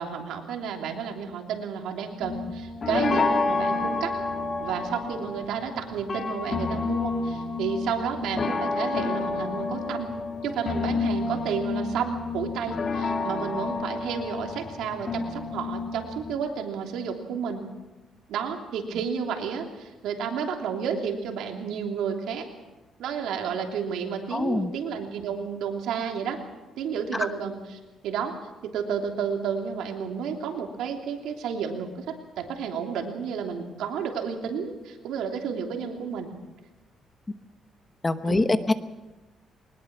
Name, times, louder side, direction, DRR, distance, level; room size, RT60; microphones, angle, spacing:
voice 1, 0.0-4.1 4.6-10.2 10.4-17.6 18.3-22.5 23.0-26.4 26.8-28.3 28.6-36.3 38.2-38.5, right 7 dB, 90° right, 2 dB, 3.1 m, -31 dB
sound 1, 2.2-16.3, left 3 dB, 35° left, 2.0 m, -29 dB
voice 2, 24.3-24.7 38.0-38.7, left 2 dB, 20° left, 10 dB, 1.0 m, -24 dB
22.0 x 20.0 x 6.1 m, 1.1 s
cardioid pair, 130°, 0 cm